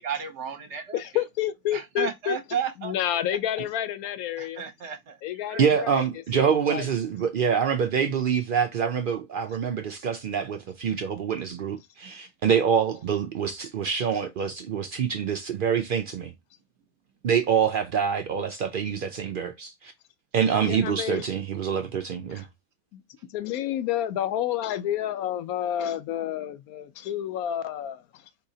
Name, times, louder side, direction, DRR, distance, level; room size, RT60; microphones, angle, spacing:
voice 1, 0.0-1.2 1.7-2.9 4.4-5.2 5.4-5.6, right 7 dB, 60° right, 0.9 m, -33 dB
voice 2, 0.9-2.4 2.8-4.6 5.2-6.0 6.3-6.9 20.6-21.3 22.3-22.4 22.9-23.0 23.3-28.2, left 11 dB, 80° left, 1.1 m, -29 dB
voice 3, 5.6-16.3 17.2-19.9 20.3-22.5, right 7 dB, 80° right, 0.4 m, -26 dB
4.7 x 2.8 x 2.7 m
omnidirectional pair, 1.5 m